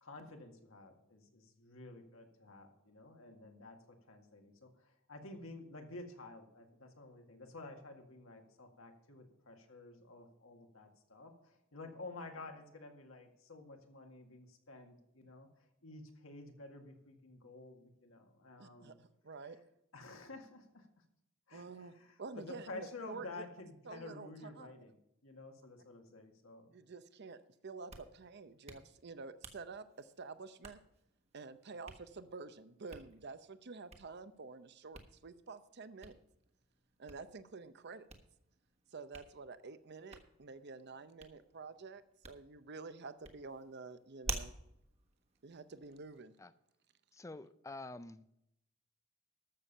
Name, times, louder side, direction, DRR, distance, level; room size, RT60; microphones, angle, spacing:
voice 1, 0.0-15.5 15.8-19.0 19.9-20.9 21.5-25.0 25.2-26.7, left 2 dB, 75° left, 4 dB, 1.9 m, -51 dB
voice 2, 18.6-19.6 21.5-23.4 23.9-24.7 26.7-27.4 27.6-30.8 31.3-36.1 37.0-38.1 38.9-44.5 45.4-46.3, right 4 dB, 55° right, 12 dB, 0.7 m, -49 dB
Hands, 27.7-46.2, right 3 dB, 30° right, 1.3 m, -52 dB
voice 3, 47.1-48.3, left 2 dB, 15° left, 14 dB, 0.4 m, -48 dB
13.5 x 7.0 x 5.5 m, 0.81 s
head